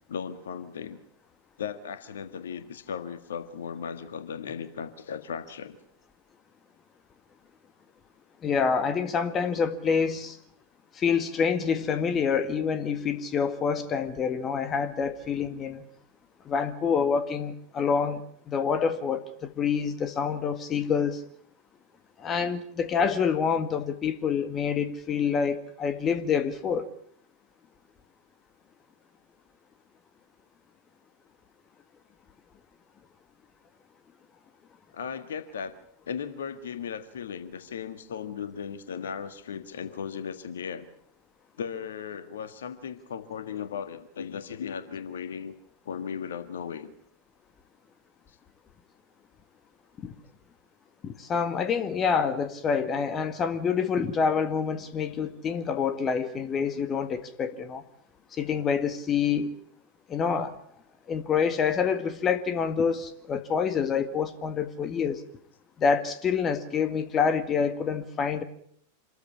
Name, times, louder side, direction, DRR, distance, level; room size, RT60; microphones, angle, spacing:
voice 1, 0.1-1.0 1.6-5.8 22.3-22.5 34.9-35.7 36.1-40.9 41.6-45.5 45.8-46.9 48.3-48.4, left 7 dB, 65° left, 1.7 m, -36 dB
voice 2, 8.4-10.4 10.9-15.8 16.4-21.2 22.2-26.9 50.0-50.1 51.0-57.8 58.3-59.5 60.1-60.6 61.1-65.2 65.8-68.4, left 6 dB, 25° left, 1.8 m, -27 dB
27.0 x 14.0 x 8.7 m
figure-of-eight pair, 90°, 0 cm